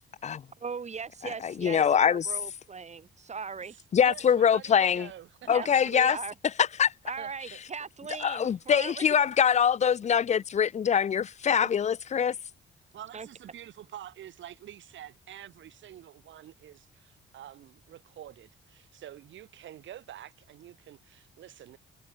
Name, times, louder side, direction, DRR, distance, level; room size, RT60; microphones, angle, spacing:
voice 1, 0.6-3.8 5.4-6.3 7.1-9.2 11.6-11.7 13.1-13.3, right 5 dB, 35° right, 1.4 m, -39 dB
voice 2, 1.4-2.3 3.9-5.1 5.5-6.2 6.6-6.9 8.2-12.4, left 8 dB, 35° left, 0.5 m, -24 dB
voice 3, 4.0-5.7 7.2-7.6 12.9-21.8, right 11 dB, 70° right, 2.8 m, -47 dB
cardioid pair, 90°, 20 cm